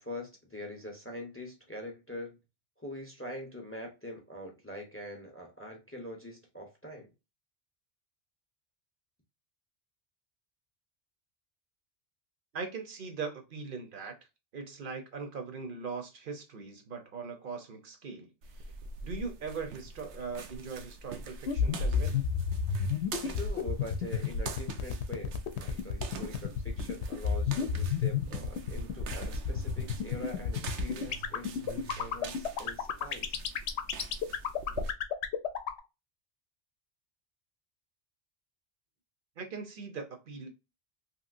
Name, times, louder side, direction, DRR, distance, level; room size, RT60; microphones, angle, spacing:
voice 1, 0.0-2.3 2.8-7.1 23.2-33.4, left 1 dB, 15° left, 0.7 m, -43 dB
voice 2, 12.5-14.1 14.5-18.7 19.0-22.1 39.4-40.5, right 5 dB, 55° right, 0.8 m, -40 dB
sound 1, 18.4-34.9, right 3 dB, 85° right, 0.9 m, -44 dB
sound 2, 21.5-35.8, left 8 dB, 80° left, 0.9 m, -30 dB
2.9 x 2.8 x 2.4 m
omnidirectional pair, 1.1 m